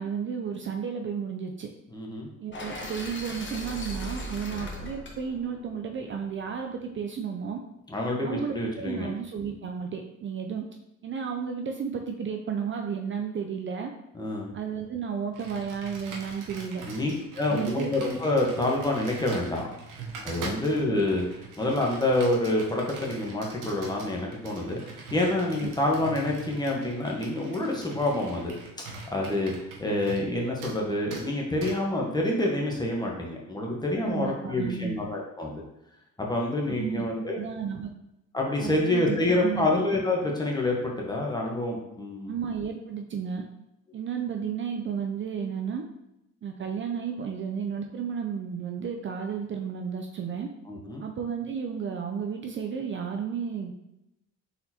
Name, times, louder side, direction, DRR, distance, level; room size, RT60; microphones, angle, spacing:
voice 1, 0.0-1.7 2.4-7.6 8.2-10.7 11.0-13.9 14.5-16.8 17.4-17.9 20.4-20.6 25.6-25.7 34.0-35.0 36.7-37.1 37.3-37.9 38.6-39.7 42.3-43.4 43.9-45.9 46.4-50.5 51.0-53.7, right 7 dB, 40° right, 3 dB, 0.4 m, -33 dB
voice 2, 1.9-2.3 7.9-9.1 14.1-14.5 16.9-19.7 20.2-28.5 29.1-29.5 29.8-35.6 36.2-37.4 38.3-42.4 50.7-51.0, left 1 dB, 15° left, -2 dB, 1.1 m, -27 dB
sound 1, 2.5-6.6, equal, 40° left, 1.1 m, -38 dB
Computer keyboard, 15.3-30.3 30.6-30.8 31.1-31.3 31.6-31.8, right 4 dB, 85° right, 1.0 m, -42 dB
4.1 x 3.9 x 2.8 m, 0.87 s
cardioid pair, 90°, 30 cm